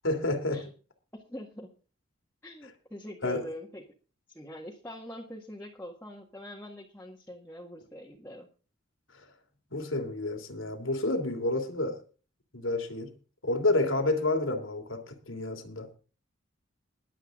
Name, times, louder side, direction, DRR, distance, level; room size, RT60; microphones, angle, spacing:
voice 1, 0.0-0.6 3.2-3.4 9.1-9.3 9.7-12.0 12.5-13.1 13.4-15.9, left 2 dB, 80° left, 2.9 m, -29 dB
voice 2, 1.1-1.7 2.4-3.8 4.3-8.5, equal, 10° left, 1.8 m, -43 dB
21.5 x 8.2 x 3.8 m
head